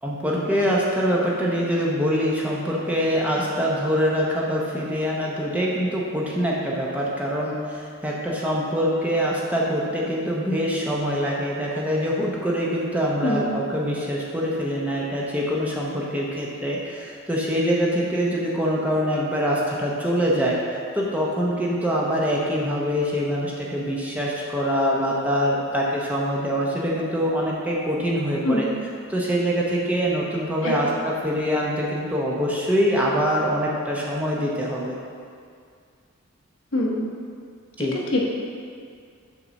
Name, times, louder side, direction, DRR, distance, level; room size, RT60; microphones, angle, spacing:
voice 1, 0.0-20.6 20.9-28.7 29.1-34.9 37.8-38.0, equal, 5° right, -4 dB, 0.7 m, -24 dB
voice 2, 36.7-37.1 37.9-38.2, left 1 dB, 65° left, -2 dB, 1.0 m, -24 dB
6.0 x 4.0 x 6.2 m, 2.2 s
head